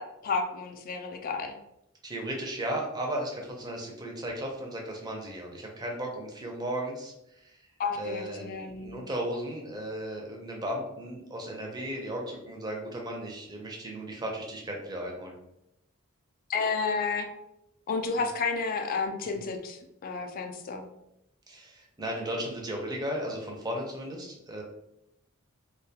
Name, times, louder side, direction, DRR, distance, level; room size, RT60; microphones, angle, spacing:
voice 1, 0.0-1.6 7.8-9.0 16.5-17.3 17.9-20.9, left 4 dB, 40° left, 5 dB, 0.3 m, -31 dB
voice 2, 2.0-7.6 8.0-15.3 18.2-18.3 19.2-19.4 21.5-24.6, right 1 dB, 20° right, 0 dB, 0.5 m, -35 dB
2.3 x 2.2 x 2.7 m, 0.83 s
head